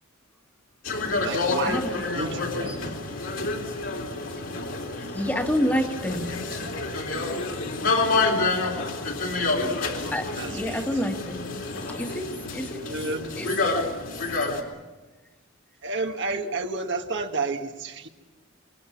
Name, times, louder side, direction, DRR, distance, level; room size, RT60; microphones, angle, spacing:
sound 1, 0.8-14.6, left 3 dB, 65° left, 3.9 m, -28 dB
voice 1, 1.1-1.8 2.2-2.8 9.4-9.6 10.4-11.0 12.9-13.5 15.8-18.1, right 3 dB, 60° right, 4 dB, 1.7 m, -31 dB
voice 2, 4.9-6.3 10.1-11.6 11.9-12.9 13.4-13.7, equal, 10° left, 3 dB, 1.8 m, -29 dB
26.0 x 21.5 x 7.3 m, 1.2 s
head